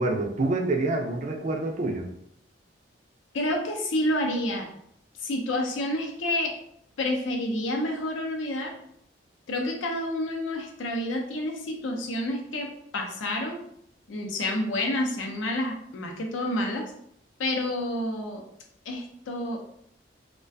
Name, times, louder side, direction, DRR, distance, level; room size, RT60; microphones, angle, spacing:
voice 1, 0.0-2.1, right 2 dB, 40° right, 2 dB, 0.3 m, -27 dB
voice 2, 3.3-4.7 5.2-6.5 7.0-8.7 9.5-13.6 14.1-16.8 17.4-18.4 18.9-19.6, left 1 dB, 85° left, 2 dB, 0.5 m, -29 dB
2.3 x 2.2 x 2.5 m, 0.72 s
head